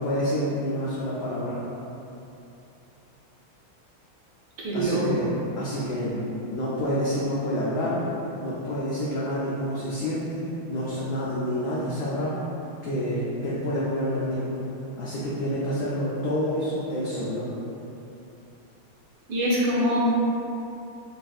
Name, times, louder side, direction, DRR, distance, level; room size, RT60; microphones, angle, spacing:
voice 1, 0.0-1.6 4.7-6.2 6.5-8.0 8.4-12.4 12.8-14.7 15.0-17.5, equal, 85° left, -8 dB, 0.9 m, -28 dB
voice 2, 4.6-5.3 19.3-20.0, right 1 dB, 75° right, -6 dB, 1.2 m, -24 dB
4.1 x 2.6 x 2.3 m, 2.9 s
omnidirectional pair, 2.3 m